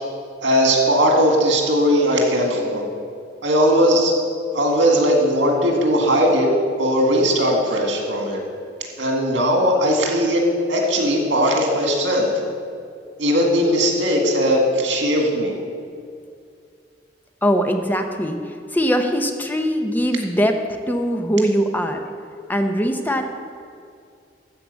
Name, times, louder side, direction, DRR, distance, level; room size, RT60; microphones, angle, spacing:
voice 1, 0.4-2.9 3.4-4.1 4.5-6.5 6.8-8.4 9.0-12.3 13.2-15.6, equal, 85° right, 0 dB, 2.0 m, -18 dB
voice 2, 17.4-20.6 20.9-22.0 22.5-23.3, equal, 10° left, 5 dB, 0.6 m, -21 dB
12.5 x 4.7 x 8.2 m, 2.3 s
head